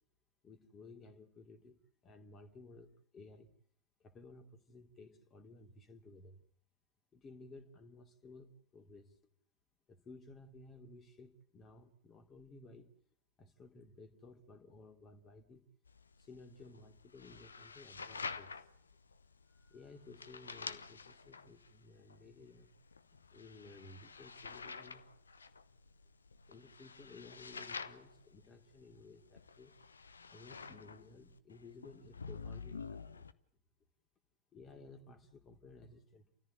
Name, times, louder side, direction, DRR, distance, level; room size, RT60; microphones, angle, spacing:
voice 1, 0.4-1.8 2.0-3.5 4.0-6.4 7.1-9.2 9.9-12.9 13.4-15.6 16.2-18.6 19.5-22.7 23.3-25.0 26.5-29.7 30.3-33.3 34.5-36.2, left 3 dB, 25° left, 2.9 m, -56 dB
sound 1, 15.9-33.3, left 5 dB, 75° left, 0.9 m, -49 dB
30.0 x 14.0 x 8.9 m
figure-of-eight pair, 90°, 0 cm